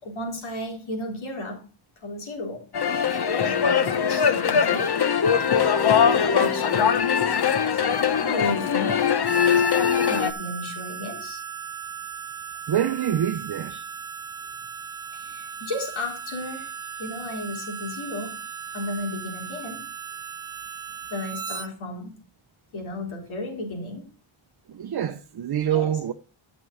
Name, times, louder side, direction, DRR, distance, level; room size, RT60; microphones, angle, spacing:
voice 1, 0.0-1.7 2.0-2.6 3.2-4.9 6.2-7.0 8.2-9.0 9.6-11.4 15.1-16.7 17.0-18.4 18.7-19.8 21.1-22.2 22.7-24.1 25.7-25.9, left 2 dB, 75° left, 4.0 m, -33 dB
sound 1, 2.7-10.3, left 7 dB, 55° left, 1.1 m, -21 dB
Harmonica, 9.2-21.7, right 7 dB, 10° right, 1.7 m, -37 dB
voice 2, 12.7-13.8 24.7-26.1, right 10 dB, 50° right, 0.7 m, -26 dB
13.5 x 6.2 x 4.0 m
wide cardioid pair, 95°, 48 cm